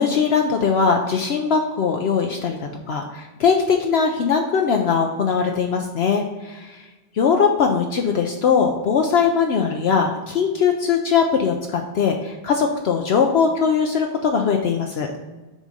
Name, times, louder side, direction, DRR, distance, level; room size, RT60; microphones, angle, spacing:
voice 1, 0.0-2.6 2.9-6.8 7.2-15.1, left 6 dB, 65° left, 3 dB, 0.8 m, -20 dB
6.2 x 3.8 x 5.3 m, 1.2 s
omnidirectional pair, 1.2 m